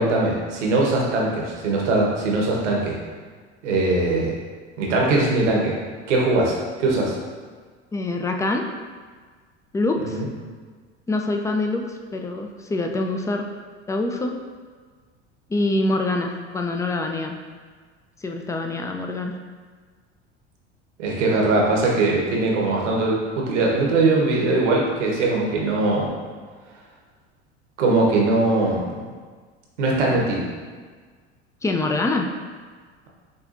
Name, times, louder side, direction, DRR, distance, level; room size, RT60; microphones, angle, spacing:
voice 1, 0.0-3.0 3.6-4.3 4.8-5.7 6.1-7.2 10.1-10.3 21.0-26.1 27.8-29.0 29.8-30.4, right 2 dB, 80° right, -2 dB, 1.1 m, -21 dB
voice 2, 7.9-8.7 9.7-10.2 11.1-13.4 13.9-14.4 15.5-17.4 18.2-19.3 31.6-32.3, left 2 dB, 10° left, 3 dB, 0.3 m, -25 dB
6.7 x 2.7 x 2.5 m, 1.5 s
hypercardioid pair, 75°, 35 cm